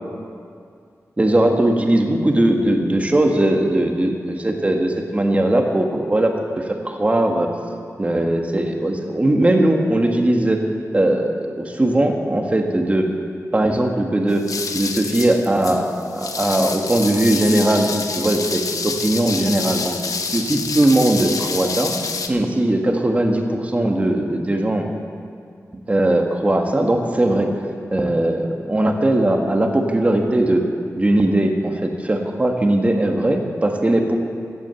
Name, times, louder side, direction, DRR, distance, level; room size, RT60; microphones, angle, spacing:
voice 1, 1.2-7.5 8.0-10.6 10.9-13.1 13.5-14.4 14.7-20.0 20.3-21.9 22.3-24.9 25.9-27.5 27.9-30.6 31.0-34.2, right 1 dB, 25° right, 3 dB, 1.4 m, -19 dB
sound 1, 14.3-22.3, left 4 dB, 85° left, 0.9 m, -28 dB
15.5 x 8.7 x 7.0 m, 2.3 s
wide cardioid pair, 125°, 6 cm